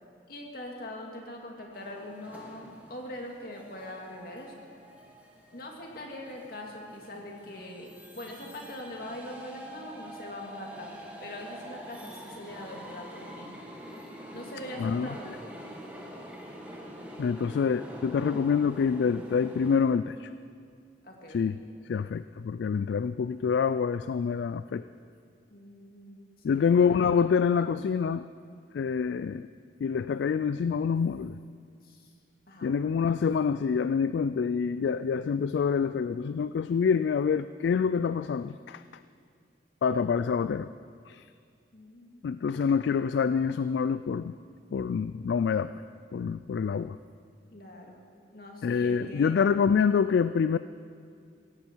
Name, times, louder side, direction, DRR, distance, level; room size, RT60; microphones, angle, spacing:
voice 1, 0.3-4.7 5.5-13.6 14.3-15.4 21.0-21.5 25.5-26.6 31.8-32.1 32.5-32.7 41.7-42.3 47.5-48.0 48.3-49.3, left 1 dB, 55° left, 0 dB, 2.2 m, -42 dB
sound 1, 1.7-19.8, equal, 10° right, 1.6 m, -46 dB
voice 2, 17.2-20.3 21.3-21.6 21.9-24.8 26.4-28.2 28.7-29.5 29.8-31.4 32.6-38.8 39.8-40.7 41.1-41.2 42.2-44.3 44.7-45.7 46.1-47.0 48.6-50.6, left 6 dB, 70° left, 13 dB, 0.3 m, -26 dB
16.5 x 16.0 x 4.5 m, 2.2 s
head